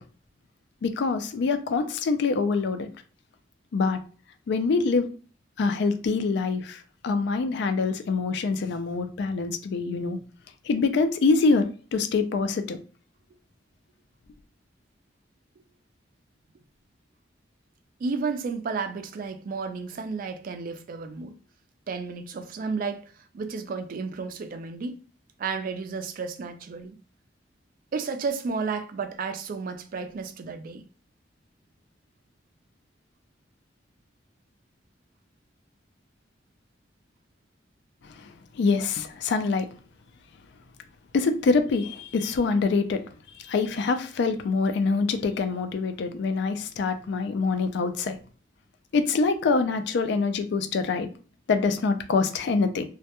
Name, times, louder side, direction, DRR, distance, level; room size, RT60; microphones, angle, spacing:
voice 1, 0.8-2.9 3.7-4.0 4.5-5.1 5.6-10.2 10.6-11.7 11.9-12.8 38.0-39.7 41.1-43.0 43.4-48.2 48.9-51.1 51.5-52.8, left 4 dB, 65° left, 0.3 m, -25 dB
voice 2, 18.0-21.3 21.9-25.0 25.4-27.0 27.9-30.8, right 4 dB, 50° right, 0.3 m, -32 dB
2.2 x 2.1 x 2.8 m
head